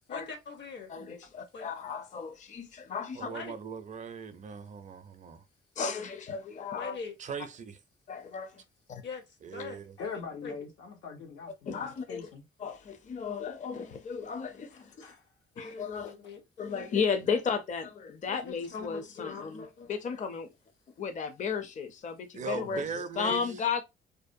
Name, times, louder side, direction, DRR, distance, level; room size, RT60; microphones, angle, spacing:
voice 1, 0.1-0.9 1.5-1.6 3.2-3.5 6.7-7.1 9.0-9.2 9.5-9.8 10.4-10.5 15.6-16.9 18.3-19.9, left 5 dB, 65° left, 0.9 m, -42 dB
voice 2, 0.9-3.3 5.8-7.0 8.1-8.5 11.7-12.2 12.6-14.8 15.6-16.1 16.6-20.5 21.0-22.8 23.2-23.8, left 6 dB, 40° left, 0.5 m, -34 dB
voice 3, 3.1-5.4 7.2-7.8 9.4-10.0 22.3-23.8, right 5 dB, 40° right, 0.4 m, -39 dB
voice 4, 10.0-12.4 14.7-15.2, left 5 dB, 85° left, 1.1 m, -42 dB
2.6 x 2.1 x 2.6 m
cardioid pair, 90°, 20 cm